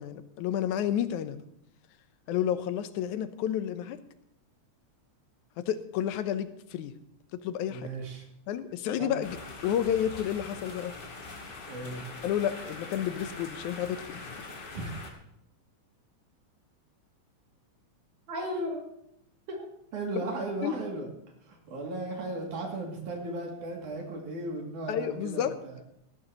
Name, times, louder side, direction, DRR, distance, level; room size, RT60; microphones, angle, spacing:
voice 1, 0.0-1.4 2.3-4.0 5.6-6.9 7.3-7.9 8.5-9.4 9.6-11.0 12.2-14.4 20.6-20.8 24.9-25.6, left 10 dB, 90° left, 11 dB, 2.2 m, -30 dB
voice 2, 7.7-8.2 9.0-9.1 11.7-12.0 14.7-14.9 18.3-18.9 19.5-19.7 19.9-21.1 21.5-25.7, right 2 dB, 85° right, 0 dB, 3.9 m, -36 dB
sound 1, 9.2-15.1, left 3 dB, 40° left, 2.4 m, -43 dB
19.0 x 14.0 x 3.0 m, 0.76 s
omnidirectional pair, 3.4 m